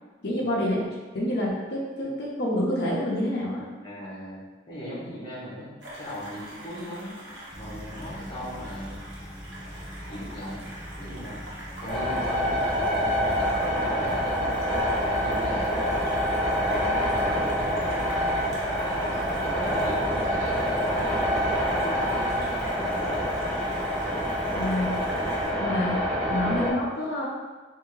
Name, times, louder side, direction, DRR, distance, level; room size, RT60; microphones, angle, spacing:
voice 1, 0.2-0.8 1.1-3.6 24.5-24.9 25.6-26.0 26.3-27.3, left 1 dB, 65° left, -4 dB, 0.8 m, -27 dB
voice 2, 3.8-4.4 4.7-5.7 6.0-7.1 7.5-9.0 10.1-10.7 11.0-11.4 11.8-14.6 15.1-15.8 16.6-17.7 18.0-21.3 21.7-23.1 25.9-26.1, equal, 30° left, -8 dB, 1.1 m, -38 dB
sound 1, 5.8-25.5, right 1 dB, 80° right, 1.0 m, -42 dB
sound 2, 7.5-25.5, equal, 5° right, 0.4 m, -42 dB
sound 3, 11.9-26.7, equal, 25° right, 0.8 m, -26 dB
3.5 x 2.7 x 3.1 m, 1.2 s
head